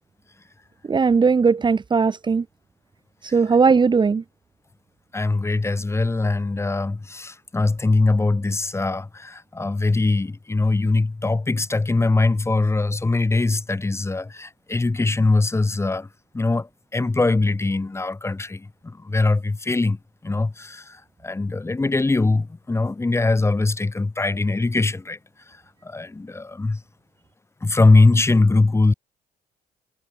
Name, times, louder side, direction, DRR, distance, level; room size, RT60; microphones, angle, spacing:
voice 1, 0.9-2.4 3.3-4.2, right 5 dB, 25° right, 2.2 m, -18 dB
voice 2, 5.1-16.1 16.3-18.7 19.0-20.0 20.2-21.0 21.2-25.2 25.8-26.8 27.6-28.9, left 3 dB, 15° left, 4.1 m, -21 dB
cardioid pair, 110°, 17 cm